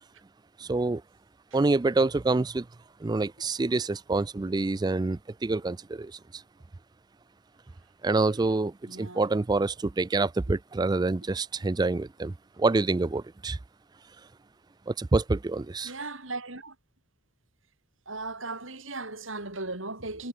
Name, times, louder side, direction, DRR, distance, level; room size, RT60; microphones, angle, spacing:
voice 1, 0.6-1.0 1.5-2.7 3.0-6.4 8.0-13.6 14.9-15.9, right 3 dB, 20° right, 0.4 m, -27 dB
voice 2, 8.8-9.2 15.8-16.8 18.1-20.3, right 3 dB, 75° right, 7.7 m, -37 dB
head